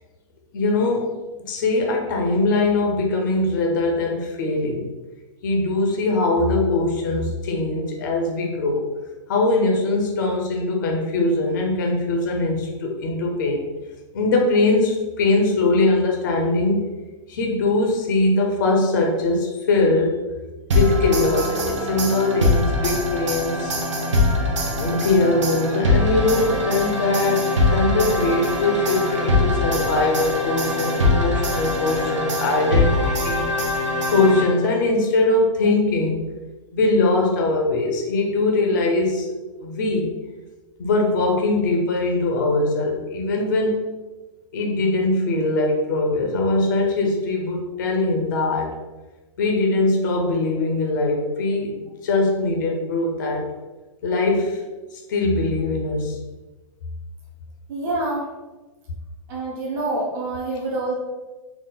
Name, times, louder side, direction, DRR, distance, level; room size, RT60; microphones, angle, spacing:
voice 1, 0.5-1.1 1.4-4.9 5.4-8.9 9.3-13.7 14.1-16.9 17.3-20.2 20.7-23.8 24.8-33.5 34.1-36.2 36.7-39.3 39.6-40.1 40.8-43.8 44.5-48.8 49.4-53.5 54.0-54.6 54.9-56.2, left 2 dB, 35° left, 1 dB, 0.5 m, -21 dB
sound 1, 20.7-34.8, left 2 dB, 60° right, 0.8 m, -22 dB
voice 2, 57.7-58.3 59.3-60.9, right 2 dB, 15° right, -6 dB, 0.5 m, -26 dB
3.9 x 2.3 x 3.8 m, 1.2 s
hypercardioid pair, 180°, 17 cm